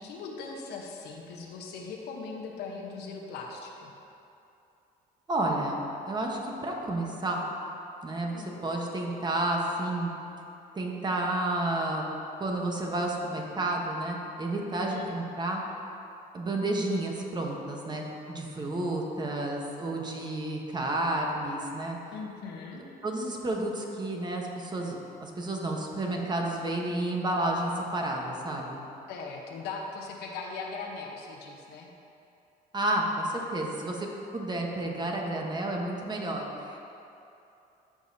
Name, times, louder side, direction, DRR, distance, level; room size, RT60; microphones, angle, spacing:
voice 1, 0.0-3.9 8.3-8.5 14.9-15.1 22.1-22.9 29.1-31.9, left 4 dB, 80° left, 0 dB, 1.0 m, -39 dB
voice 2, 5.3-7.4 8.0-10.1 10.7-12.0 12.4-15.6 16.3-22.0 23.0-28.8 32.7-34.1 34.3-36.8, right 1 dB, 25° right, 0 dB, 1.1 m, -31 dB
13.5 x 5.2 x 2.8 m, 2.8 s
cardioid pair, 110°, 17 cm